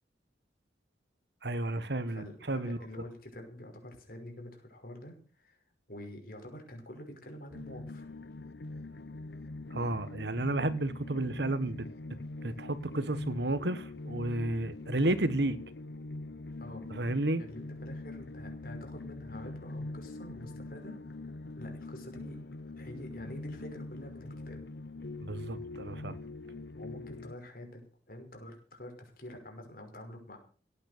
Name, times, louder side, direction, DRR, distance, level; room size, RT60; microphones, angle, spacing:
voice 1, 1.4-2.8 9.7-11.9 12.4-15.6 16.9-17.4 25.2-26.1, right 1 dB, 75° right, 1.5 m, -32 dB
voice 2, 2.1-5.6 5.9-8.0 16.6-16.9 17.4-21.0 21.6-22.4 22.8-24.6 26.7-30.4, left 1 dB, 55° left, 5.7 m, -47 dB
sound 1, 7.5-27.3, left 2 dB, 75° left, 0.8 m, -43 dB
17.0 x 9.6 x 6.8 m
head